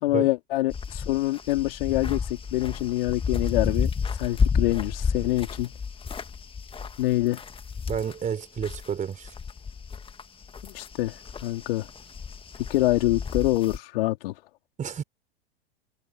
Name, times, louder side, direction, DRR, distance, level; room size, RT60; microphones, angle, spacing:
voice 1, 0.0-5.7 7.0-7.4 10.6-11.9 12.6-14.4, left 17 dB, 60° left, 3.6 m, -26 dB
sound 1, 0.7-8.9 9.2-13.8, left 6 dB, 15° left, 1.9 m, -31 dB
voice 2, 7.9-9.3 14.8-15.0, right 7 dB, 25° right, 4.4 m, -30 dB
hypercardioid pair, 95°, 32 cm